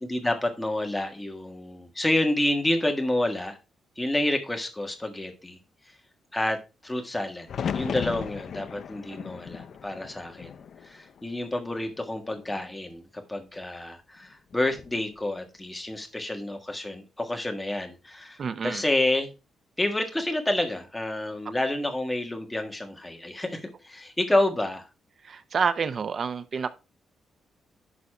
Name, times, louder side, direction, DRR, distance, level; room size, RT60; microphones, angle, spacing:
voice 1, 0.0-3.6 4.0-5.6 6.3-7.5 7.7-10.5 10.8-19.3 19.8-24.9, left 1 dB, 10° left, 1.5 m, -29 dB
sound 1, 7.5-11.5 11.9-12.6 14.5-15.0, left 7 dB, 50° left, 0.5 m, -36 dB
voice 2, 18.4-18.8 25.3-26.7, right 6 dB, 40° right, 0.6 m, -28 dB
11.0 x 4.1 x 4.9 m
cardioid pair, 160°, 0 cm